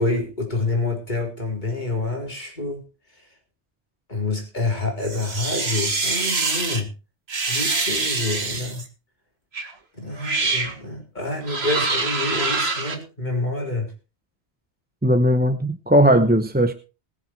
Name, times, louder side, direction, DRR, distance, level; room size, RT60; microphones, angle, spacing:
voice 1, 0.0-2.8 4.1-6.9 7.5-8.8 9.9-13.9, left 2 dB, 40° left, 4.2 m, -27 dB
sound 1, 5.0-6.8 7.3-8.9 9.5-9.7 10.2-10.7 11.4-13.0, right 3 dB, 65° right, 2.2 m, -25 dB
voice 2, 15.0-16.7, equal, 10° right, 0.7 m, -18 dB
20.5 x 7.4 x 4.5 m
omnidirectional pair, 1.1 m